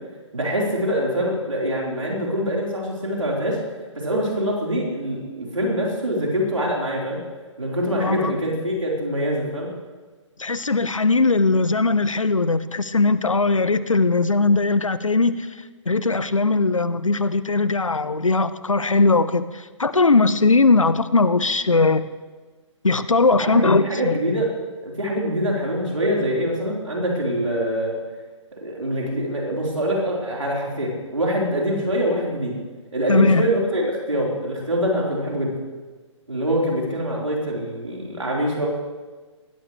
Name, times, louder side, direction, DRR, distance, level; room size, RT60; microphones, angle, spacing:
voice 1, 0.3-3.6 3.9-7.2 7.6-9.7 23.4-24.5 24.8-27.9 28.6-32.6 32.9-35.6 36.3-38.7, equal, 85° right, -3 dB, 4.4 m, -24 dB
voice 2, 8.0-8.3 10.4-22.0 22.8-24.2 33.1-33.5, left 3 dB, 90° left, 14 dB, 0.9 m, -19 dB
20.5 x 16.5 x 3.3 m, 1.4 s
figure-of-eight pair, 130°, 16 cm